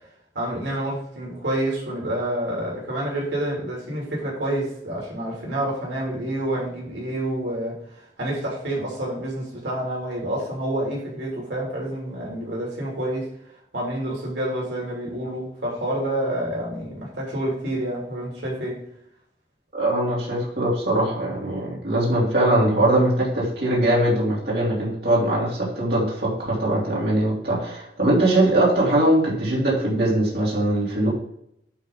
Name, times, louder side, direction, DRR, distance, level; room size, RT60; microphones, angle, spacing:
voice 1, 0.3-13.3 13.7-18.8, right 1 dB, 85° right, -4 dB, 3.2 m, -28 dB
voice 2, 19.7-31.1, right 1 dB, 60° right, -6 dB, 3.2 m, -21 dB
9.0 x 3.9 x 5.4 m, 0.74 s
head